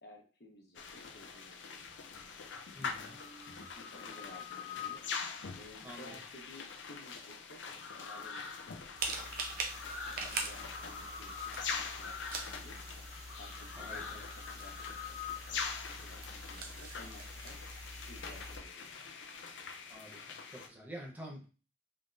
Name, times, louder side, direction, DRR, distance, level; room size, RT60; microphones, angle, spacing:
voice 1, 0.0-1.9 3.0-5.0 5.6-7.6 7.9-8.7 9.0-9.4 10.1-12.8 13.4-14.3 14.5-15.6 15.9-17.6 18.1-18.9, left 1 dB, 60° left, -1 dB, 1.1 m, -56 dB
sound 1, 0.7-20.7, left 5 dB, 85° left, 0.6 m, -43 dB
voice 2, 2.7-3.2 5.8-6.1 13.8-14.2 19.9-21.5, equal, 10° right, -1 dB, 0.8 m, -48 dB
sound 2, 9.0-18.6, right 3 dB, 50° right, 0.7 m, -43 dB
3.7 x 3.5 x 2.5 m, 0.34 s
head